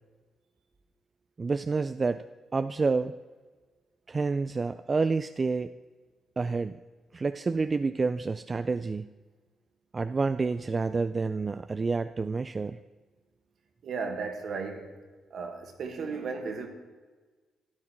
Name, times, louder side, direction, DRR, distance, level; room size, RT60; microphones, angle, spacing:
voice 1, 1.4-2.3 2.5-3.2 4.1-5.7 6.4-6.8 7.1-9.1 9.9-12.8, right 4 dB, 35° right, 0.4 m, -28 dB
voice 2, 13.8-14.9 15.3-16.7, right 4 dB, 65° right, 1.7 m, -35 dB
13.0 x 9.8 x 4.5 m
cardioid pair, 75°, 0 cm